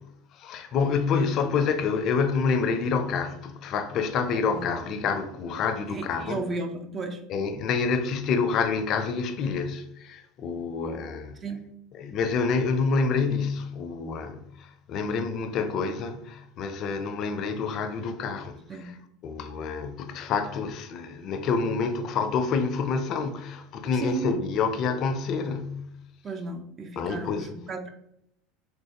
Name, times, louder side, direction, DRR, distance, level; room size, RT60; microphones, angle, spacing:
voice 1, 0.3-6.4 7.3-11.4 12.0-18.9 19.2-25.9 27.0-27.5, left 5 dB, 50° left, 0.4 m, -28 dB
voice 2, 5.9-7.2 11.4-11.7 18.7-18.9 23.9-24.3 26.2-27.9, right 3 dB, 30° right, 0.5 m, -34 dB
3.3 x 3.1 x 2.8 m
supercardioid pair, 100°, 0 cm